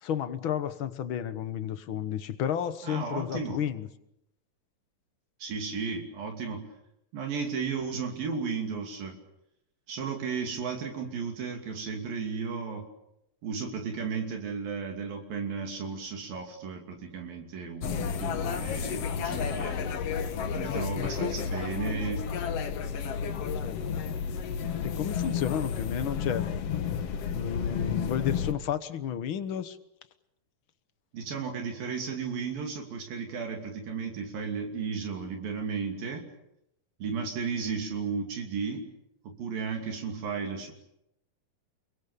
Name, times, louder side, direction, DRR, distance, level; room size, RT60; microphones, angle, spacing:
voice 1, 0.0-3.9 20.6-21.3 23.6-23.8 24.8-26.5 27.3-29.8, left 9 dB, 75° left, 10 dB, 1.1 m, -32 dB
voice 2, 2.8-3.6 5.4-6.7 7.1-9.2 9.9-12.9 13.4-19.8 20.5-22.2 31.1-36.3 37.0-38.9 39.2-40.7, right 5 dB, 75° right, 2 dB, 4.5 m, -34 dB
sound 1, 17.8-28.5, left 7 dB, 55° left, 1.9 m, -31 dB
29.0 x 24.0 x 6.9 m, 0.82 s
omnidirectional pair, 4.2 m